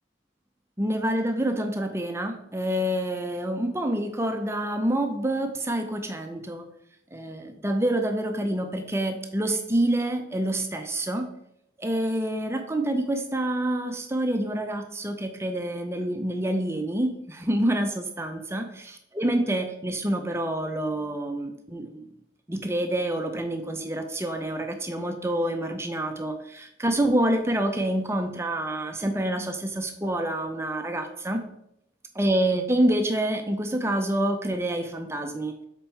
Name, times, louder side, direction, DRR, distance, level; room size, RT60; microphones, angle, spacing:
voice 1, 0.8-6.7 7.1-11.3 11.8-22.0 22.5-31.5 32.1-35.5, right 1 dB, 15° right, 6 dB, 0.6 m, -27 dB
7.1 x 4.5 x 4.5 m, 0.76 s
head